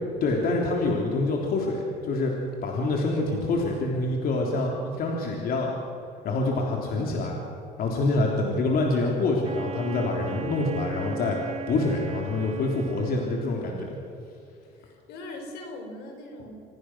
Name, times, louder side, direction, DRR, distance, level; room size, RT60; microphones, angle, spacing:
voice 1, 0.2-2.3 2.6-5.7 6.2-7.4 7.8-11.4 11.7-14.0, left 2 dB, 65° left, -1 dB, 3.5 m, -26 dB
Wind instrument woodwind instrument, 9.4-13.8, right 5 dB, 40° right, 1.3 m, -38 dB
voice 2, 14.6-16.5, left 2 dB, 85° left, 3 dB, 5.0 m, -41 dB
27.0 x 18.0 x 6.3 m, 2.6 s
cardioid pair, 110°, 17 cm